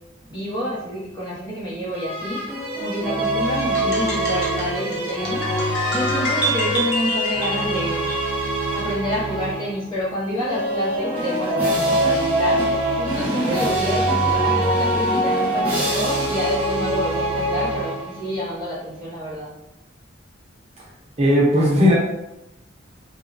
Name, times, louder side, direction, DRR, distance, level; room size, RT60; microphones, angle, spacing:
voice 1, 0.2-2.4 2.8-5.5 5.8-8.0 8.7-12.6 13.0-19.5, equal, 25° left, -7 dB, 0.8 m, -28 dB
sound 1, 1.9-9.8 10.4-18.3, right 1 dB, 10° right, 1.1 m, -23 dB
sound 2, 3.6-8.3, left 1 dB, 60° left, 0.7 m, -27 dB
voice 2, 21.2-21.9, equal, 30° right, -5 dB, 0.7 m, -16 dB
2.9 x 2.2 x 2.6 m, 0.90 s
head